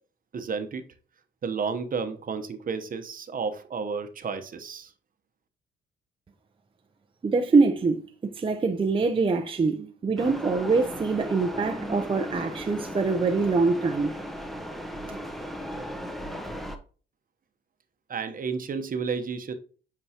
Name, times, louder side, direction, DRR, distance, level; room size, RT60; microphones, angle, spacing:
voice 1, 0.3-0.8 1.4-4.9 18.1-19.5, right 5 dB, 45° right, 1.0 m, -31 dB
voice 2, 7.2-14.2 15.1-15.2, right 4 dB, 25° right, 0.6 m, -24 dB
sound 1, 10.2-16.8, equal, ahead, 0.9 m, -36 dB
7.8 x 4.7 x 2.9 m
cardioid pair, 90°, 20 cm